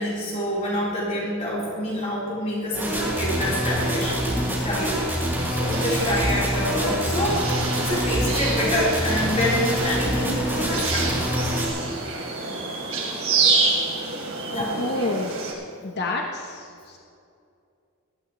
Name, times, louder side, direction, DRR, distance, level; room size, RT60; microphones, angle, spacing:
voice 1, 0.0-4.2 4.6-5.0 5.5-7.4 7.7-11.2 13.3-13.4 14.5-14.8, equal, 35° left, -7 dB, 3.9 m, -26 dB
sound 1, 2.7-11.7, equal, 10° right, 4.0 m, -25 dB
sound 2, 5.7-15.5, right 4 dB, 70° right, 3.1 m, -28 dB
voice 2, 14.8-15.3 15.8-17.0, left 2 dB, 50° left, 1 dB, 1.0 m, -28 dB
19.5 x 15.0 x 3.1 m, 2.4 s
head